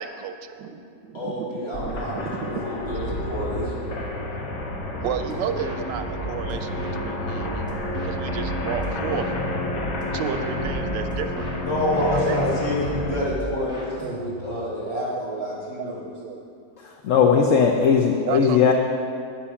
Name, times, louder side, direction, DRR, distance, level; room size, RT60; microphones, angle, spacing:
voice 1, 0.0-1.5 1.8-2.6 5.0-9.3 10.1-11.5 12.0-12.4 13.4-13.7 14.0-16.4 18.2-18.6, right 7 dB, 85° right, 9 dB, 1.4 m, -33 dB
voice 2, 1.1-3.7 11.6-16.1, left 1 dB, 45° left, -6 dB, 3.6 m, -28 dB
sound 1, 1.7-13.1, left 1 dB, 85° left, 2.1 m, -30 dB
sound 2, 5.0-5.3 5.6-7.0 7.4-9.4 9.7-10.0 10.3-11.6 12.0-12.3 12.5-14.6, right 1 dB, ahead, 2.0 m, -36 dB
voice 3, 16.8-18.7, left 6 dB, 60° left, 3 dB, 0.9 m, -18 dB
12.0 x 8.7 x 5.8 m, 2.6 s
omnidirectional pair, 1.9 m